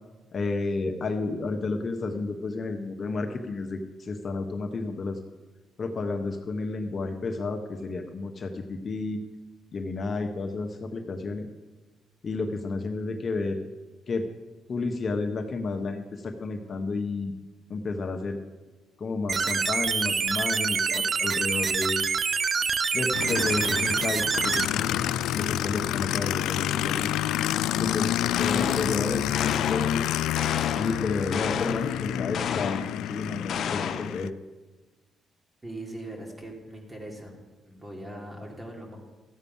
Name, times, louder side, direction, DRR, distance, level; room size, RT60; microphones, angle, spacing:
voice 1, 0.3-5.2 5.8-9.2 9.7-11.5 12.2-13.6 14.1-14.3 14.7-17.3 17.7-18.4 19.0-22.0 22.9-25.0 25.4-27.2 27.8-30.1 30.7-34.3, left 3 dB, 45° left, 4 dB, 1.1 m, -31 dB
sound 1, 19.3-24.7, right 5 dB, 45° right, 0.4 m, -26 dB
Aircraft, 23.1-34.3, left 12 dB, 90° left, 0.3 m, -28 dB
sound 2, 28.3-29.0 29.3-30.0 30.4-31.0 31.3-31.9 32.3-32.9 33.5-34.1, left 7 dB, 60° left, 0.8 m, -32 dB
voice 2, 35.6-37.4 37.6-39.0, right 1 dB, 20° right, 0 dB, 3.0 m, -40 dB
14.0 x 8.2 x 5.5 m, 1.2 s
cardioid pair, 90°, 0 cm